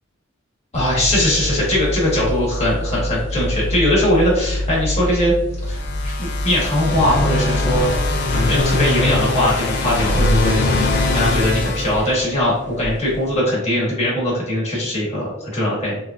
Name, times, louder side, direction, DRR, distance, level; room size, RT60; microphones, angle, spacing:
voice 1, 0.7-5.3 5.6-5.8 6.0-7.9 8.3-10.6 11.1-16.0, left 1 dB, 30° left, -5 dB, 1.1 m, -20 dB
sound 1, 0.7-13.4, left 1 dB, 55° right, 0.4 m, -25 dB
sound 2, 5.7-12.6, left 3 dB, 55° left, 0.4 m, -23 dB
3.1 x 2.4 x 2.4 m, 0.88 s
head